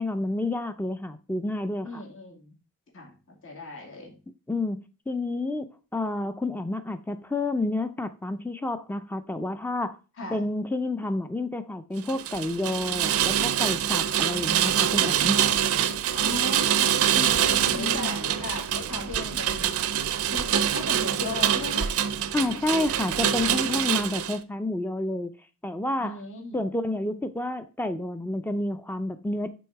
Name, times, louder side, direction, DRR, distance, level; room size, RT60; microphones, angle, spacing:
voice 1, 0.0-2.0 4.5-10.0 10.3-15.4 17.7-18.1 19.6-19.8 22.3-25.3 25.6-26.2 26.5-29.5, left 2 dB, 10° left, 0.4 m, -29 dB
voice 2, 1.8-2.5 2.9-4.2 10.2-10.4 16.1-19.6 20.3-21.9 26.0-26.6, left 2 dB, 65° left, 2.1 m, -37 dB
Rain, 12.0-24.4, right 9 dB, 70° right, 0.5 m, -25 dB
6.2 x 3.9 x 4.6 m
head